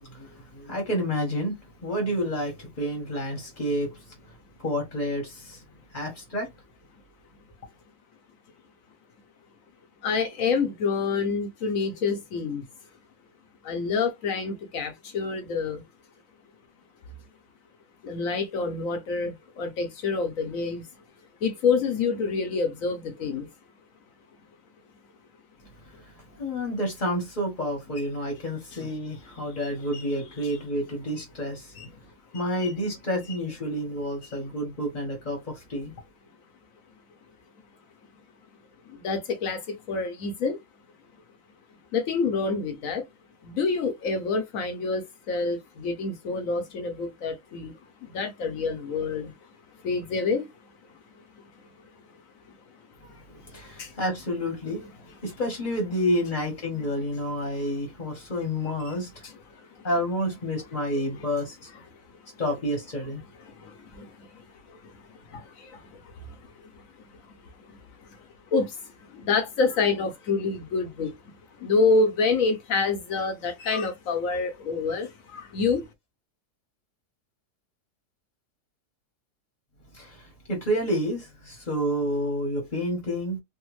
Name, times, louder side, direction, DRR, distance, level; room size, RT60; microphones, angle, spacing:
voice 1, 0.0-4.3 4.6-5.6 5.9-6.5 25.9-31.7 32.3-35.9 53.0-54.8 55.2-59.2 59.8-61.7 62.4-63.2 79.9-83.4, equal, 35° left, 0.9 m, -29 dB
voice 2, 10.0-12.7 13.6-15.8 18.0-20.9 21.4-23.5 29.9-30.0 31.8-31.9 32.6-32.7 38.9-40.6 41.9-43.1 43.4-47.7 48.0-49.3 49.8-50.5 51.4-51.5 53.4-54.0 59.2-59.9 63.4-67.4 67.6-75.9, left 4 dB, 65° left, 1.0 m, -28 dB
3.4 x 2.2 x 3.0 m
omnidirectional pair, 1.8 m